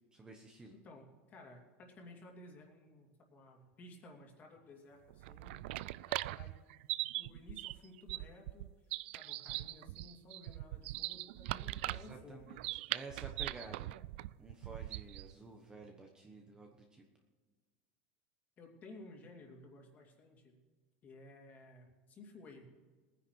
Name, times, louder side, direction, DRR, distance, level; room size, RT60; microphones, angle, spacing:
voice 1, 0.1-0.7 11.8-14.0 14.4-17.0, right 3 dB, 15° right, 2 dB, 1.2 m, -52 dB
voice 2, 0.7-5.6 6.1-6.5 7.2-8.7 9.1-12.7 18.6-20.6 21.0-22.6, left 2 dB, 30° left, 1 dB, 2.7 m, -56 dB
sound 1, 5.1-15.3, right 17 dB, 75° right, 0.4 m, -41 dB
19.0 x 10.0 x 4.7 m, 1.4 s
supercardioid pair, 155°, 6 cm